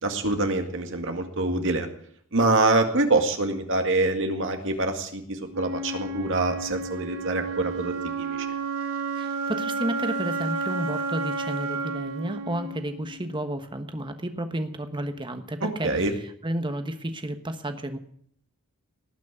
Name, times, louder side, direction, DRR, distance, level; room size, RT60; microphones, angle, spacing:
voice 1, 0.0-1.9 2.3-8.5 15.6-16.1, right 2 dB, 60° right, 5 dB, 2.0 m, -25 dB
Wind instrument woodwind instrument, 5.5-13.5, right 4 dB, 90° right, 2.4 m, -31 dB
voice 2, 9.1-16.1 16.4-18.0, right 1 dB, 20° right, 8 dB, 1.3 m, -32 dB
19.0 x 6.3 x 9.8 m, 0.63 s
head